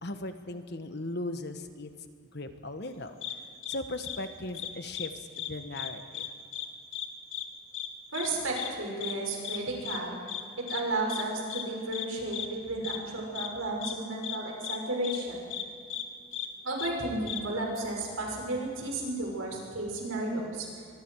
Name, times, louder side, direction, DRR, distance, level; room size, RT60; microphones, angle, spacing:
voice 1, 0.0-1.9 2.3-3.2 3.7-6.3, left 2 dB, 50° left, 7 dB, 1.4 m, -38 dB
sound 1, 3.2-3.3 3.6-3.8 4.0-4.2 4.5-5.1 5.3-5.5 5.7-6.3 6.5-6.7 6.9-7.1 7.3-7.4 7.7-7.9 8.1-8.3 8.6-8.7 9.0-9.1 9.4-9.6 9.9-10.0 10.3-10.4 10.7-10.8 11.1-11.2 11.5-11.6 11.9-12.1 12.3-12.5 12.8-13.0 13.4-13.5 13.8-13.9 14.2-14.4 14.6-14.8 15.0-15.2 15.5-15.6 15.9-16.0 16.3-16.5 16.8-16.9 17.3-17.4, left 11 dB, 65° left, 1.7 m, -35 dB
voice 2, 8.1-10.2 10.7-15.5 16.6-20.7, right 2 dB, 80° right, -1 dB, 6.2 m, -33 dB
24.5 x 23.0 x 4.8 m, 2.4 s
head